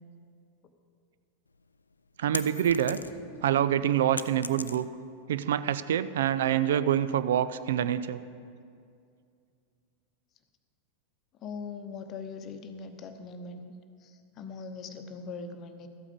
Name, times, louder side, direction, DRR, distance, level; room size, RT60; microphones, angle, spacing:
sound 1, 1.5-3.4 3.7-5.2, left 4 dB, 75° left, 0.3 m, -38 dB
voice 1, 2.2-3.0 3.4-4.9 5.3-8.2, right 10 dB, 60° right, 14 dB, 0.3 m, -26 dB
sound 2, 2.7-4.1, right 1 dB, 85° right, 2.1 m, -50 dB
voice 2, 11.4-13.7 14.0-15.9, left 4 dB, 35° left, 8 dB, 0.8 m, -41 dB
13.5 x 8.3 x 5.2 m, 2.3 s
figure-of-eight pair, 90°, 0 cm